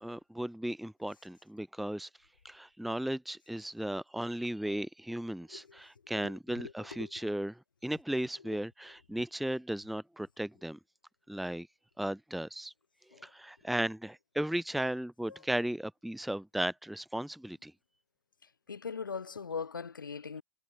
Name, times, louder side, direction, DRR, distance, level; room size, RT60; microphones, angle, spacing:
voice 1, 0.0-2.1 2.4-10.8 11.3-11.7 12.0-12.7 13.2-17.7, right 1 dB, ahead, 0.6 m, -36 dB
voice 2, 6.2-6.7 7.0-7.1 13.1-13.2 18.7-20.4, left 5 dB, 75° left, 1.3 m, -40 dB
figure-of-eight pair, 95°, 11 cm